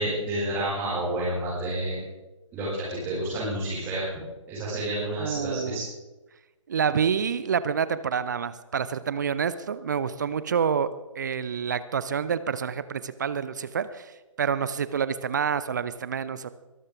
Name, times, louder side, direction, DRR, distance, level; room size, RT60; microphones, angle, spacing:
voice 1, 0.0-2.0 2.5-4.0 4.5-5.8, right 1 dB, 10° right, -10 dB, 5.3 m, -29 dB
voice 2, 5.2-5.9 6.7-10.9 11.2-14.1 14.4-16.5, right 7 dB, 35° right, 15 dB, 0.6 m, -28 dB
23.5 x 13.0 x 3.5 m, 1.1 s
figure-of-eight pair, 140°, 17 cm